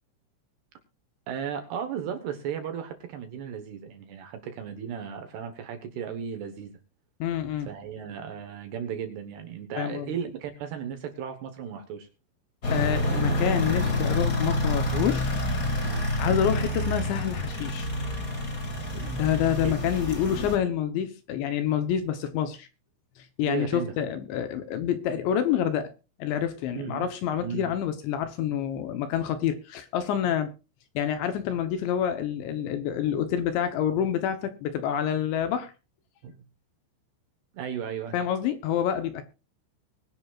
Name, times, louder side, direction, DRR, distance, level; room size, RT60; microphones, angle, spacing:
voice 1, 1.3-6.7 7.7-12.1 15.8-16.1 19.6-19.7 23.5-23.9 26.7-27.1 27.4-27.7 36.2-36.4 37.5-38.1, right 8 dB, 70° right, 2.8 m, -35 dB
voice 2, 7.2-7.7 9.8-10.1 12.7-15.3 16.2-17.9 18.9-22.7 23.2-25.9 26.2-30.5 31.0-35.7 38.1-39.2, left 9 dB, 75° left, 2.9 m, -27 dB
sound 1, 12.6-20.6, left 1 dB, 40° left, 1.2 m, -28 dB
21.5 x 11.0 x 2.4 m
omnidirectional pair, 5.9 m